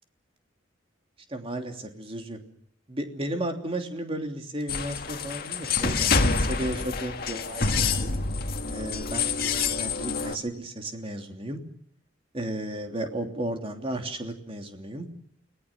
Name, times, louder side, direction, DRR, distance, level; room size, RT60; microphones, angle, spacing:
voice 1, 1.3-2.4 2.9-8.1 8.7-11.6 12.3-15.1, right 1 dB, 30° right, 4 dB, 3.1 m, -34 dB
sound 1, 4.7-10.4, left 4 dB, 50° left, 1.8 m, -27 dB
30.0 x 19.5 x 7.4 m, 0.65 s
head